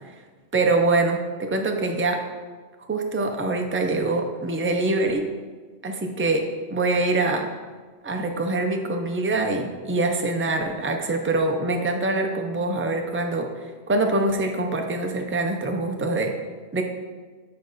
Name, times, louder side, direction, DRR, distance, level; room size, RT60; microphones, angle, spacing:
voice 1, 0.5-2.2 2.9-5.3 5.8-7.5 8.0-13.5 13.9-16.4 16.7-16.8, right 2 dB, 15° right, 3 dB, 0.4 m, -24 dB
8.6 x 4.7 x 4.0 m, 1.4 s
omnidirectional pair, 1.1 m